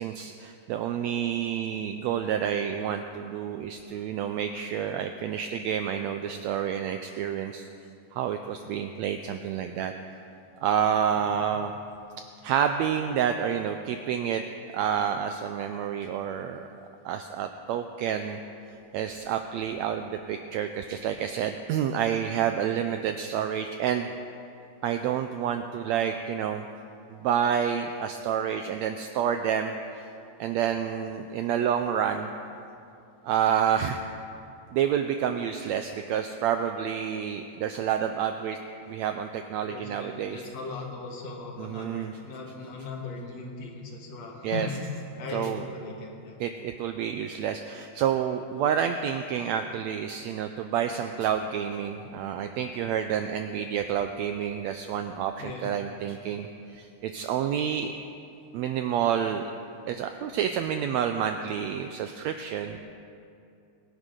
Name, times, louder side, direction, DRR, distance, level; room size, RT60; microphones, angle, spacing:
voice 1, 0.0-7.7 8.1-9.9 10.6-11.7 12.4-14.4 14.7-16.7 17.0-18.4 18.9-24.1 24.8-26.6 27.1-29.7 30.4-32.3 33.2-34.0 34.7-38.6 38.9-40.4 41.6-42.2 44.4-44.7 45.3-45.6 46.4-57.9 58.5-59.4 59.9-62.8, right 8 dB, 90° right, 7 dB, 1.5 m, -29 dB
voice 2, 39.6-44.8 45.2-46.4 55.4-55.7, left 4 dB, 60° left, 1 dB, 2.5 m, -38 dB
22.0 x 10.5 x 3.8 m, 2.6 s
omnidirectional pair, 3.7 m